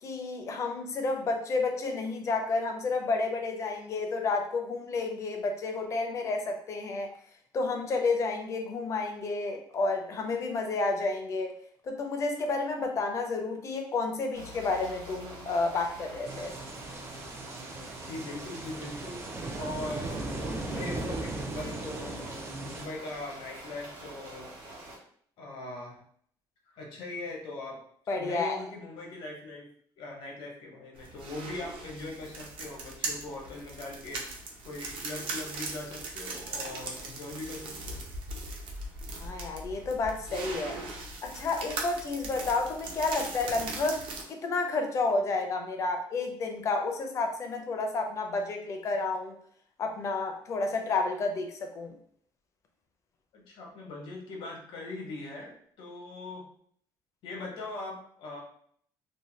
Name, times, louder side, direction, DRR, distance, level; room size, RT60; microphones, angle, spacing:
voice 1, 0.0-7.1 7.5-11.5 11.8-16.5 28.1-28.6 39.1-40.8 41.2-49.3 49.8-52.0, left 3 dB, 35° left, 4 dB, 0.4 m, -31 dB
sound 1, 14.3-25.0, right 1 dB, 60° right, 1.0 m, -46 dB
sound 2, 16.2-22.8, right 2 dB, 30° right, 0.4 m, -38 dB
voice 2, 18.0-19.3 19.6-24.5 25.4-26.0 26.7-27.8 28.2-29.7 30.0-34.3 34.6-38.0 53.3-56.4 57.2-58.4, left 2 dB, 80° left, -1 dB, 0.9 m, -40 dB
sound 3, 30.9-44.2, right 3 dB, 80° right, 0.6 m, -39 dB
2.6 x 2.2 x 3.1 m, 0.62 s
cardioid pair, 170°, 9 cm